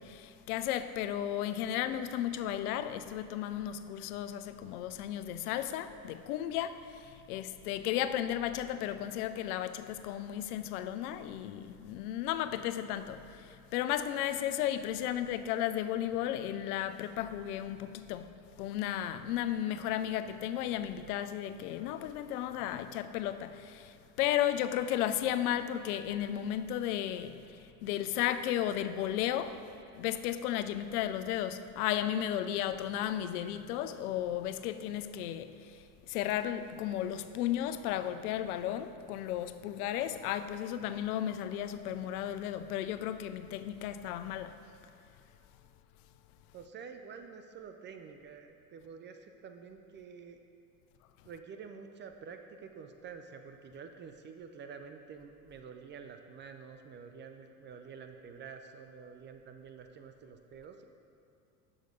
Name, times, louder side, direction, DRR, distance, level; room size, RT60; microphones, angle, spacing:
voice 1, 0.0-18.3 18.6-29.6 29.9-44.6, left 11 dB, 70° left, 0.6 m, -34 dB
voice 2, 46.5-50.4 51.3-60.8, right 6 dB, 25° right, 0.3 m, -48 dB
6.5 x 6.2 x 5.1 m
hypercardioid pair, 85°, 46 cm